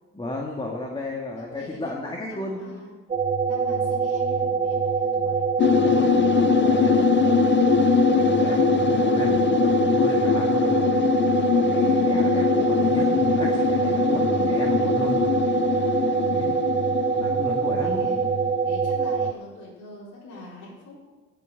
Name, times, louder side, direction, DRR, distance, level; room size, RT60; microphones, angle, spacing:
voice 1, 0.1-2.6 5.8-6.1 6.5-7.1 7.8-11.0 11.6-15.2 16.3-16.7 17.2-18.1, left 2 dB, 15° left, -1 dB, 1.7 m, -33 dB
voice 2, 1.4-2.9 3.4-6.2 16.1-16.5 17.8-18.3 18.6-21.0, left 2 dB, 75° left, -8 dB, 4.3 m, -44 dB
sound 1, 3.1-19.3, right 5 dB, 25° right, 0.5 m, -24 dB
sound 2, 5.6-18.4, left 8 dB, 40° left, 0.4 m, -23 dB
18.5 x 7.9 x 3.9 m, 1.3 s
cardioid pair, 90°, 30 cm